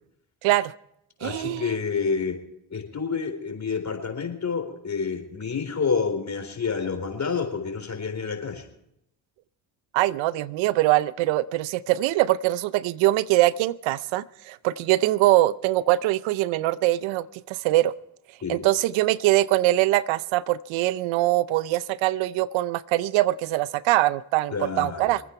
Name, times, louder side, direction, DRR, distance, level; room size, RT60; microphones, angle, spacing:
voice 1, 0.4-0.7 1.2-1.6 9.9-17.9 18.5-25.2, right 16 dB, 80° right, 19 dB, 0.6 m, -23 dB
voice 2, 1.2-2.4 2.7-8.7 18.4-18.6 24.5-25.1, left 5 dB, 35° left, 6 dB, 4.0 m, -28 dB
25.5 x 9.3 x 4.5 m, 0.76 s
supercardioid pair, 65°, 45 cm